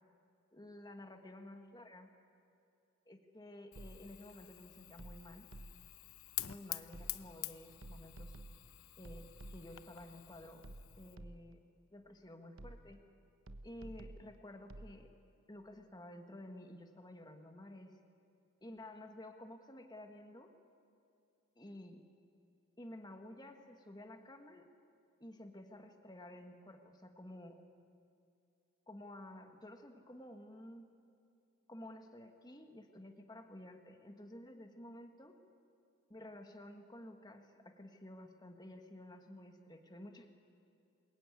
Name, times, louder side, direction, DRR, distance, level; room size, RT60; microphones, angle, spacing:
voice 1, 0.5-2.1 3.1-5.5 6.4-8.3 9.0-10.7 11.0-11.6 11.9-13.0 13.6-15.1 15.5-18.0 18.6-20.5 21.5-22.0 22.8-24.7 25.2-27.6 28.9-30.9 31.7-35.4 36.1-40.3, left 1 dB, 20° left, 5 dB, 1.5 m, -52 dB
Fire, 3.7-11.2, left 15 dB, 70° left, 0.8 m, -48 dB
sound 1, 3.8-4.3 5.0-6.0 6.9-7.4 7.8-9.9 10.6-11.7 12.6-13.1 13.5-15.0, right 1 dB, 65° right, 1.1 m, -52 dB
26.5 x 21.5 x 9.7 m, 2.5 s
head